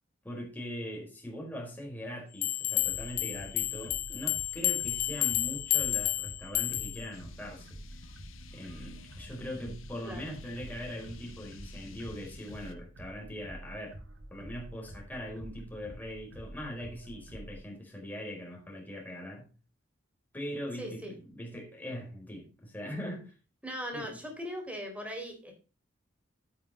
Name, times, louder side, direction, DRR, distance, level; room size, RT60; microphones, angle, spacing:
voice 1, 0.2-7.7 8.5-14.0 14.3-19.5 20.3-23.3 23.9-24.1, equal, 10° left, -1 dB, 4.4 m, -41 dB
sound 1, 2.4-7.1, left 16 dB, 45° left, 0.4 m, -31 dB
sound 2, 2.8-17.6, right 1 dB, 80° right, 2.2 m, -48 dB
sound 3, 7.1-12.7, left 4 dB, 90° left, 1.0 m, -52 dB
voice 2, 20.8-21.1 23.6-25.5, equal, 5° right, 3 dB, 3.6 m, -39 dB
9.9 x 8.5 x 4.2 m, 0.33 s
head